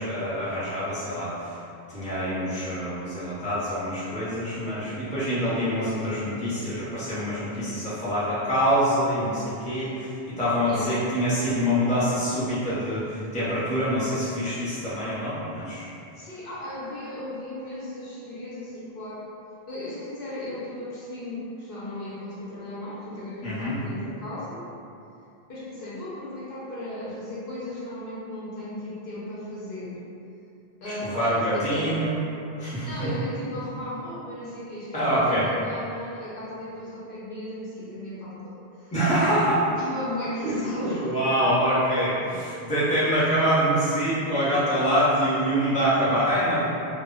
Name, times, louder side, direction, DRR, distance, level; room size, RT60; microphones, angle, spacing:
voice 1, 0.0-1.5 1.9-15.9 23.4-23.8 31.1-32.2 32.6-32.9 34.9-35.4 38.9-39.6 40.4-46.6, equal, 10° left, -11 dB, 0.6 m, -25 dB
voice 2, 10.6-11.1 16.1-19.2 19.7-24.6 25.5-29.9 30.8-32.0 32.8-38.9 39.7-41.2 45.2-45.3, left 1 dB, 60° left, -8 dB, 0.8 m, -36 dB
2.1 x 2.0 x 3.7 m, 2.7 s
omnidirectional pair, 1.1 m